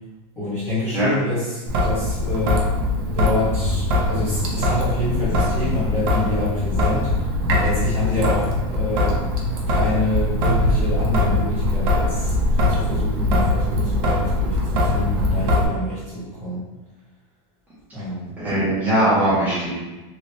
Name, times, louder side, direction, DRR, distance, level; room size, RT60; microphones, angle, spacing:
voice 1, 0.4-2.7 3.1-7.1 7.4-9.2 9.7-12.3 12.7-16.7 17.9-18.3, left 2 dB, 15° left, -14 dB, 1.2 m, -27 dB
Traffic noise roadway noise / Drip / Trickle dribble, 1.7-15.7, left 1 dB, 55° right, 0.7 m, -21 dB
voice 2, 18.4-19.7, right 1 dB, 10° right, -12 dB, 1.4 m, -20 dB
3.2 x 2.8 x 2.8 m, 1.1 s
supercardioid pair, 165°, 15 cm